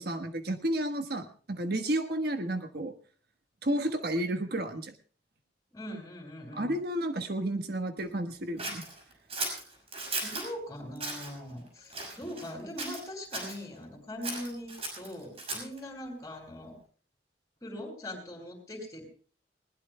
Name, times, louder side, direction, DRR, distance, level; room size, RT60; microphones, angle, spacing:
voice 1, 0.0-2.9 3.6-4.9 6.5-8.8, right 1 dB, 60° right, 7 dB, 1.3 m, -31 dB
voice 2, 5.7-6.7 10.2-16.8 17.6-19.0, left 1 dB, 20° left, 3 dB, 6.4 m, -41 dB
Scissors, 8.6-10.5 11.0-11.3 11.9-12.5 12.8-13.6 14.2-15.8, right 2 dB, 35° right, 5.9 m, -36 dB
20.5 x 20.0 x 2.2 m, 0.43 s
head